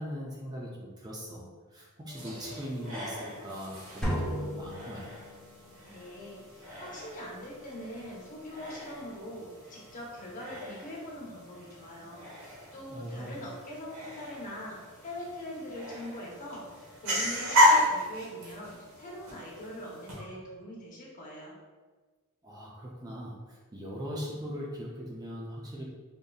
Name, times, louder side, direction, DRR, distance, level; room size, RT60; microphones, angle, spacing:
voice 1, 0.0-5.2 12.9-13.4 22.4-25.8, equal, 15° right, -4 dB, 0.5 m, -40 dB
sound 1, 2.1-20.2, left 1 dB, 65° right, 1.4 m, -33 dB
sound 2, 4.0-5.7, equal, 5° left, 0.8 m, -34 dB
voice 2, 5.9-21.5, equal, 35° left, -3 dB, 0.9 m, -42 dB
5.1 x 2.6 x 2.3 m, 1.4 s
head